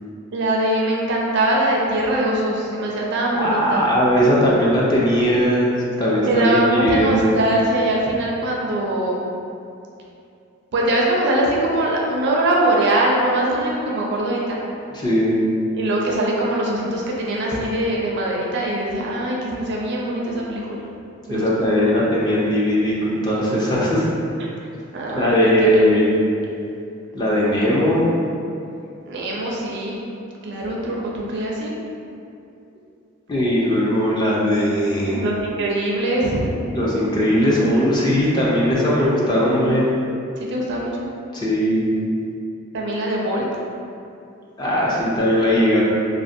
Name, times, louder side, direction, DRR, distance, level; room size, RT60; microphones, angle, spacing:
voice 1, 0.3-3.9 6.2-9.2 10.7-14.6 15.7-20.6 21.3-21.7 24.9-25.9 29.1-30.0 30.4-31.7 35.0-36.5 40.4-41.1 42.7-43.4, right 1 dB, 60° right, -3 dB, 0.4 m, -22 dB
voice 2, 3.3-5.7 6.0-7.2 14.9-15.4 21.3-24.1 25.1-26.2 27.1-28.1 33.3-35.2 36.7-39.9 41.3-41.8 44.6-45.8, equal, 20° left, -6 dB, 0.4 m, -19 dB
2.5 x 2.0 x 2.5 m, 2.6 s
head